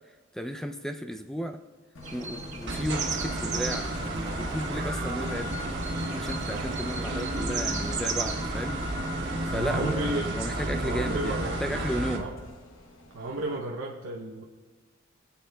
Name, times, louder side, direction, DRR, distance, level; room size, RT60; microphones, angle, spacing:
voice 1, 0.3-1.6 2.1-5.6 6.2-8.8 9.5-12.3, equal, ahead, 7 dB, 0.3 m, -34 dB
Engine, 1.9-13.6, left 2 dB, 70° left, 1.0 m, -46 dB
sound 1, 2.0-9.9, right 5 dB, 35° right, 1.4 m, -38 dB
sound 2, 2.7-12.2, right 1 dB, 60° right, 1.4 m, -32 dB
voice 2, 9.5-10.3 10.8-11.6 12.2-12.3 13.1-14.4, right 2 dB, 85° right, -2 dB, 0.7 m, -32 dB
20.0 x 8.4 x 2.2 m, 1.4 s
head